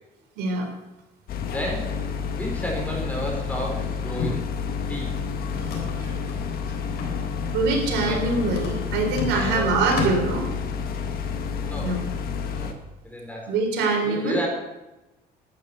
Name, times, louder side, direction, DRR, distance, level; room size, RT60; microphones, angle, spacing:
voice 1, 0.4-0.7 5.9-6.1 7.5-10.5 11.8-12.1 13.5-14.4, right 3 dB, 90° right, 2 dB, 3.7 m, -24 dB
sound 1, 1.3-12.7, left 6 dB, 65° left, 1.6 m, -30 dB
voice 2, 1.4-1.9 2.3-4.4 4.9-5.1 8.0-8.3 9.3-9.7 11.6-12.0 12.5-12.8 13.0-13.5 14.0-14.5, equal, 10° left, -1 dB, 5.1 m, -32 dB
sound 2, 3.6-11.0, left 4 dB, 85° left, 3.6 m, -35 dB
11.5 x 9.4 x 8.2 m, 1.0 s
cardioid pair, 110°, 17 cm